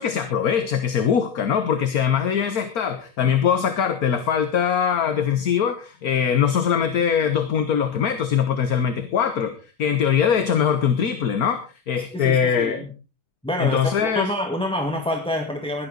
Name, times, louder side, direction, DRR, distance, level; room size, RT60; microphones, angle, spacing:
voice 1, 0.0-12.8 13.6-14.3, left 8 dB, 55° left, 9 dB, 1.6 m, -22 dB
voice 2, 12.1-12.9 13.4-15.9, left 1 dB, 5° left, 3 dB, 1.8 m, -27 dB
17.0 x 12.5 x 3.9 m, 0.33 s
omnidirectional pair, 1.9 m